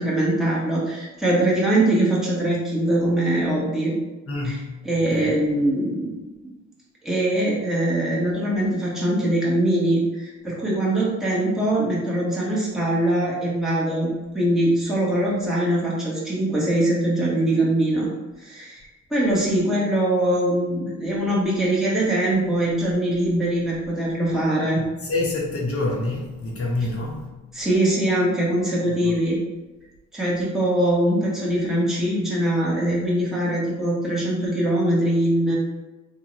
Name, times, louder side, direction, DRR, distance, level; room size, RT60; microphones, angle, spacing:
voice 1, 0.0-3.9 4.4-4.6 4.8-6.1 7.0-18.1 18.4-18.8 19.1-24.8 27.5-29.4 30.1-35.5, right 1 dB, ahead, -6 dB, 1.1 m, -22 dB
voice 2, 4.3-4.7 5.1-5.3 24.8-27.3 29.0-29.2, left 2 dB, 50° left, -2 dB, 1.0 m, -27 dB
3.4 x 2.8 x 3.1 m, 1.1 s
cardioid pair, 90°, 30 cm